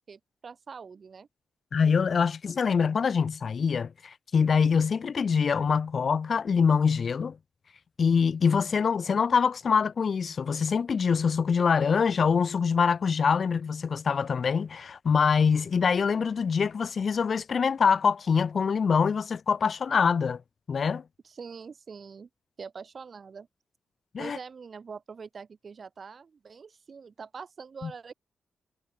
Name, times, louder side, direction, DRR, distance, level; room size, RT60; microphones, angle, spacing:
voice 1, 0.1-1.3 21.2-22.3 22.6-23.5 24.2-28.1, right 5 dB, 55° right, 6.8 m, -44 dB
voice 2, 1.7-7.4 8.0-20.4 20.7-21.0 24.1-24.4 27.8-27.9, left 6 dB, 60° left, 2.5 m, -24 dB
supercardioid pair, 40°, 0 cm